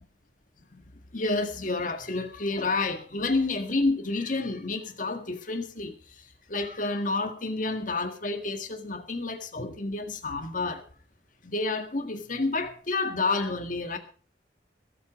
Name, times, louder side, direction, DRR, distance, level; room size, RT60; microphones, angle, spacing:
voice 1, 1.1-10.8 11.4-14.0, left 3 dB, 45° left, 1.9 m, -30 dB
22.5 x 8.5 x 5.1 m
head